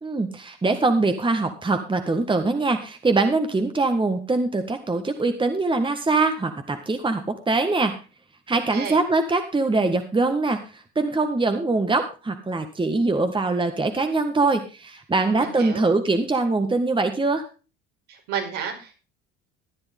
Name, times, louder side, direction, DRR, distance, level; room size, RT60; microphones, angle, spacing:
voice 1, 0.0-8.0 8.5-17.4, right 3 dB, 15° right, 7 dB, 1.7 m, -23 dB
voice 2, 8.5-9.0 15.2-15.9 18.1-18.9, right 7 dB, 70° right, 1 dB, 5.0 m, -32 dB
14.5 x 10.5 x 3.6 m, 0.32 s
hypercardioid pair, 70°, 31 cm